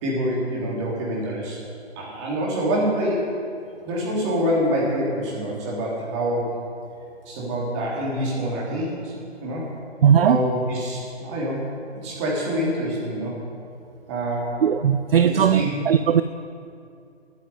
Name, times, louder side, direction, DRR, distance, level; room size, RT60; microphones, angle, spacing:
voice 1, 0.0-1.6 2.0-3.3 3.9-6.6 7.3-9.7 10.2-11.7 11.9-13.4 14.1-14.5 15.2-15.7, equal, 25° right, -4 dB, 3.5 m, -26 dB
voice 2, 10.0-10.4 14.6-16.2, right 8 dB, 60° right, 12 dB, 0.5 m, -18 dB
9.8 x 9.3 x 9.3 m, 2.4 s
figure-of-eight pair, 150°, 34 cm